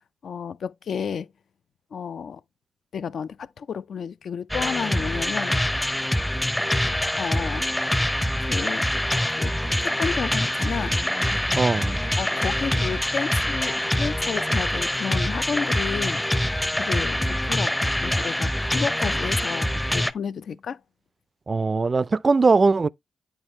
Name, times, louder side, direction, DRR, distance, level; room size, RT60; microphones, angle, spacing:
voice 1, 0.2-1.3 1.9-2.4 2.9-5.6 7.2-7.7 8.4-8.9 9.3-9.5 9.8-11.0 12.2-16.2 16.8-20.8, left 6 dB, 70° left, 0.4 m, -31 dB
sound 1, 4.5-20.1, left 1 dB, 10° left, 0.6 m, -25 dB
voice 2, 11.6-12.0 21.5-22.9, right 4 dB, 40° right, 0.3 m, -20 dB
8.8 x 4.4 x 3.1 m
supercardioid pair, 45°, 0 cm